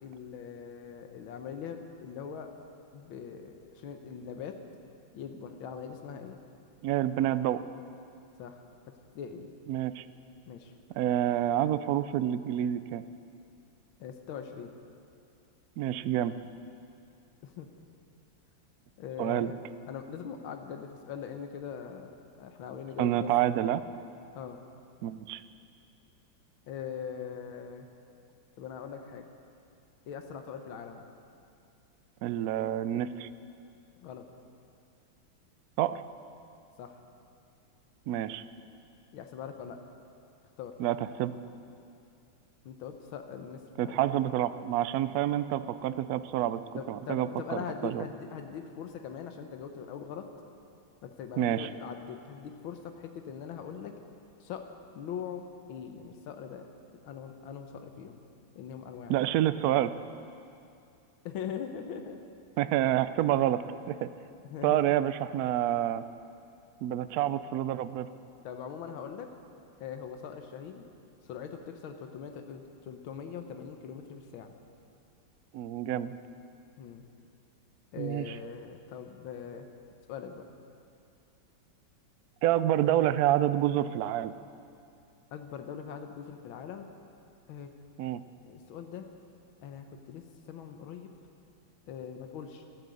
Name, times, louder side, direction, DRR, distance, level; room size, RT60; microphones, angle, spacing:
voice 1, 0.0-2.5 2.9-4.6 5.1-6.4 8.4-8.6 9.1-9.5 10.5-10.7 14.0-14.7 17.4-17.7 19.0-19.6 19.9-23.3 24.3-24.6 26.7-27.9 28.6-29.2 30.1-31.0 34.0-34.2 36.8-37.0 39.1-39.8 40.6-40.7 42.6-44.0 46.7-50.3 51.0-53.9 54.4-54.6 54.9-55.4 55.7-56.7 57.0-58.2 58.5-59.1 61.2-62.2 64.4-64.8 68.4-69.3 69.8-70.9 71.2-74.5 76.8-77.0 77.9-79.7 80.1-80.4 85.3-86.9 87.5-87.7 88.4-89.1 89.6-91.1 91.9-92.6, left 7 dB, 90° left, 6 dB, 1.7 m, -41 dB
voice 2, 6.8-7.6 9.7-10.0 10.9-13.0 15.8-16.4 19.2-19.5 23.0-23.8 25.0-25.4 32.2-33.3 35.8-36.0 38.1-38.4 40.8-41.4 43.8-48.1 51.4-51.7 59.1-59.9 62.6-64.1 64.6-66.0 66.8-68.1 75.5-76.1 78.0-78.3 82.4-84.3 88.0-88.2, right 12 dB, 80° right, 13 dB, 0.8 m, -28 dB
13.0 x 12.0 x 7.7 m, 2.5 s
omnidirectional pair, 2.1 m